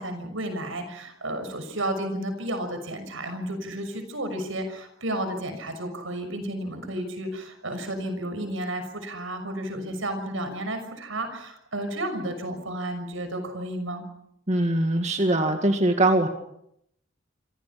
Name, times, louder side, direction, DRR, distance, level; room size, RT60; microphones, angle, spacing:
voice 1, 0.0-14.0, right 1 dB, 80° right, 8 dB, 6.3 m, -32 dB
voice 2, 14.5-16.3, right 1 dB, 35° right, 4 dB, 2.1 m, -22 dB
27.0 x 26.0 x 5.9 m, 0.75 s
head